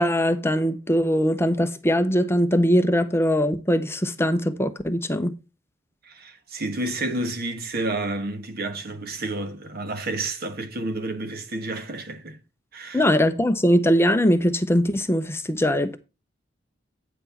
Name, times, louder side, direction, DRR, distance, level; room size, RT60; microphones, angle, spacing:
voice 1, 0.0-5.3 12.9-16.0, equal, 15° left, 0.7 m, -21 dB
voice 2, 6.0-12.4 12.7-13.1, right 2 dB, 55° right, 1.4 m, -30 dB
9.2 x 6.0 x 4.3 m
head